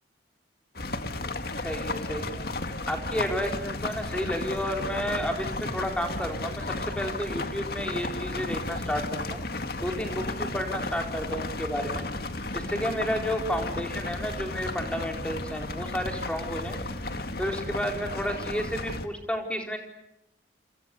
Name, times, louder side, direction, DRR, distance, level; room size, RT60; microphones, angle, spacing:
sound 1, 0.8-19.1, left 2 dB, 55° left, 2.1 m, -34 dB
voice 1, 1.6-2.5 2.9-9.4 9.8-12.0 12.5-16.8 17.4-19.8, equal, 5° left, 3 dB, 4.3 m, -31 dB
30.0 x 28.5 x 6.9 m, 0.84 s
head